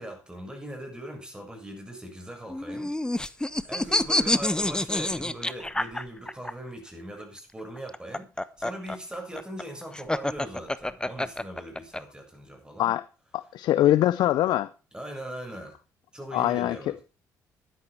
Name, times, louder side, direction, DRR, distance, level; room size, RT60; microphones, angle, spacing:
voice 1, 0.0-3.2 3.6-12.9 14.9-15.8 16.1-17.0, right 1 dB, 10° right, 7.0 m, -40 dB
sound 1, 2.5-6.5 7.8-12.0, left 1 dB, 10° left, 1.0 m, -27 dB
voice 2, 13.3-14.7 16.3-16.8, left 13 dB, 75° left, 0.5 m, -23 dB
12.0 x 11.0 x 4.4 m
supercardioid pair, 55°, 7 cm